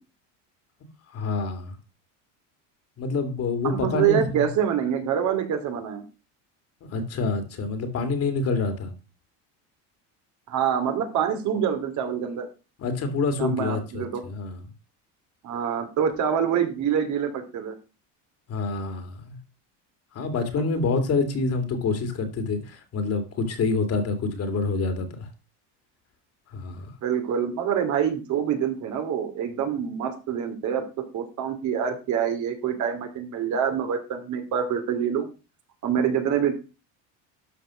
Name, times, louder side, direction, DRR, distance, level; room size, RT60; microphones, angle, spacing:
voice 1, 1.1-1.8 3.0-4.5 6.9-8.9 12.8-14.6 18.5-19.4 20.1-25.3 26.5-26.9, left 3 dB, 40° left, 7 dB, 2.5 m, -27 dB
voice 2, 3.6-6.0 10.5-12.5 13.4-14.2 15.4-17.7 27.0-30.8 31.1-35.3 35.8-36.6, right 8 dB, 50° right, 6 dB, 2.6 m, -26 dB
12.5 x 4.9 x 6.2 m, 0.32 s
cardioid pair, 130°, 37 cm